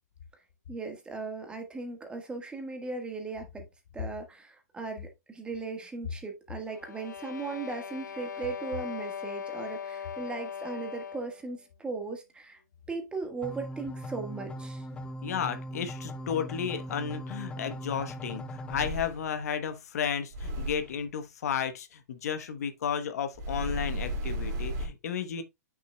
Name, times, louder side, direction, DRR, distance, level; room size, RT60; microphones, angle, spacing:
voice 1, 0.7-3.6 3.9-12.6 12.9-14.8, right 4 dB, 10° right, 1.5 m, -38 dB
sound 1, 6.7-11.4, left 8 dB, 85° left, 0.4 m, -39 dB
sound 2, 13.4-18.9, equal, 10° left, 0.6 m, -39 dB
voice 2, 15.2-25.4, left 7 dB, 60° left, 1.1 m, -33 dB
sound 3, 18.7-19.4 20.3-20.9 23.3-24.9, equal, 35° right, 2.3 m, -34 dB
8.9 x 6.2 x 2.3 m
hypercardioid pair, 125°, 9 cm